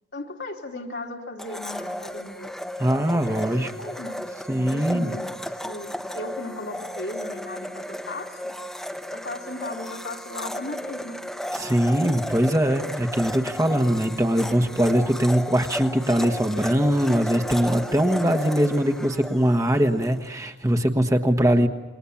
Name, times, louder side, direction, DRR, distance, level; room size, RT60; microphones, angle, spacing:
voice 1, 0.1-2.5 3.1-4.2 4.7-5.3 5.6-8.5 9.1-11.2 11.8-12.2, left 2 dB, 70° left, 1 dB, 2.9 m, -36 dB
Domestic sounds home sounds, 1.4-20.2, equal, ahead, 1.0 m, -34 dB
voice 2, 2.8-3.7 4.5-5.1 11.5-21.7, equal, 15° right, 6 dB, 1.3 m, -22 dB
28.0 x 22.0 x 7.2 m, 1.2 s
head